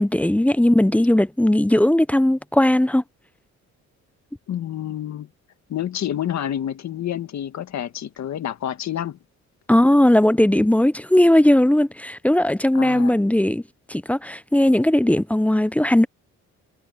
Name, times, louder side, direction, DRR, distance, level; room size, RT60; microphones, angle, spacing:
voice 1, 0.0-3.0 9.7-13.6 13.9-16.1, left 1 dB, 5° left, 0.6 m, -18 dB
voice 2, 4.5-5.3 5.7-9.2 12.7-13.2, left 10 dB, 65° left, 1.8 m, -28 dB
cardioid pair, 90°, 30 cm